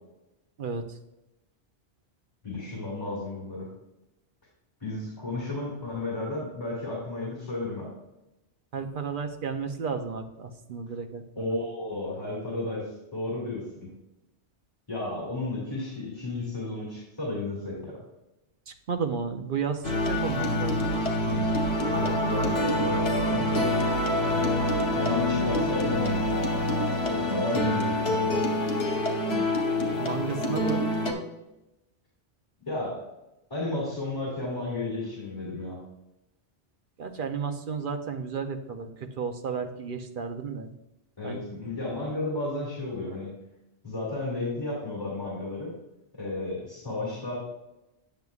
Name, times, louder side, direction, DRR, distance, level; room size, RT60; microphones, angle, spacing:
voice 1, 2.4-3.7 4.8-7.9 11.4-13.9 14.9-18.0 21.4-23.7 24.3-24.6 25.0-26.3 27.0-28.4 32.7-33.0 33.5-35.8 41.2-43.3 43.8-45.7 46.1-47.4, left 2 dB, 20° left, -6 dB, 2.5 m, -33 dB
voice 2, 8.7-11.6 18.7-21.5 30.0-30.8 37.0-40.7 41.2-41.4, right 5 dB, 55° right, 7 dB, 0.8 m, -33 dB
sound 1, 19.8-31.1, left 1 dB, 70° left, 1.4 m, -26 dB
9.2 x 6.9 x 2.4 m, 0.94 s
omnidirectional pair, 1.2 m